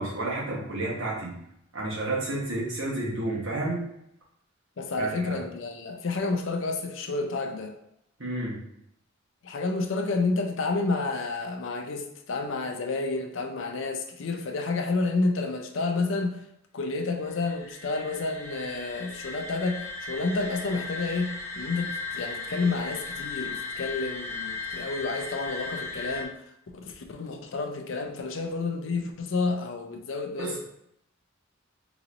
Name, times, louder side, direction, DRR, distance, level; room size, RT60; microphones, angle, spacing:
voice 1, 0.0-1.3 1.7-3.8 5.0-5.4 8.2-8.6 30.4-30.6, right 2 dB, 70° right, 1.2 m, -30 dB
voice 2, 4.8-7.8 9.4-16.4 16.7-26.4 26.8-30.6, left 3 dB, 65° left, 0.5 m, -30 dB
sound 1, 17.1-26.2, left 3 dB, 15° left, 0.5 m, -37 dB
3.9 x 3.0 x 2.5 m
head